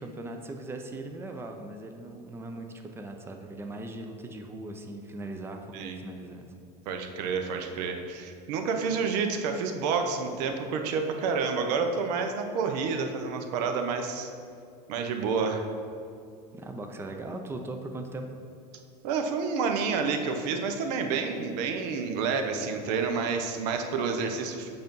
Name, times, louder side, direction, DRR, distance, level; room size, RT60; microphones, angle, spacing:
voice 1, 0.0-6.5 16.5-18.3, right 2 dB, 10° right, 4 dB, 0.5 m, -39 dB
voice 2, 6.9-14.3 14.9-15.7 19.0-24.7, right 5 dB, 75° right, 5 dB, 0.7 m, -29 dB
6.8 x 2.6 x 5.3 m, 2.4 s
supercardioid pair, 100°, 21 cm